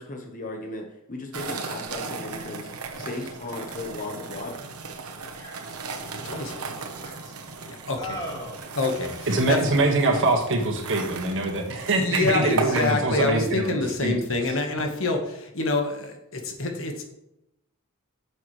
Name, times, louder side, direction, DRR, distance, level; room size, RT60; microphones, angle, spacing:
voice 1, 0.0-4.5, left 2 dB, 35° left, 1 dB, 1.2 m, -36 dB
sound 1, 1.3-12.9, right 4 dB, 80° right, 1.2 m, -36 dB
voice 2, 2.7-3.1 3.5-3.7 5.3-5.9 6.8-7.4 7.9-8.6, equal, 20° left, -3 dB, 2.9 m, -39 dB
voice 3, 6.2-6.6 7.6-8.0 8.7-9.6 10.1-10.2 12.0-17.0, left 2 dB, 65° left, 3 dB, 1.5 m, -26 dB
voice 4, 9.3-13.8 14.0-14.1, right 2 dB, 60° right, 2 dB, 1.7 m, -23 dB
10.0 x 7.1 x 3.3 m, 0.84 s
head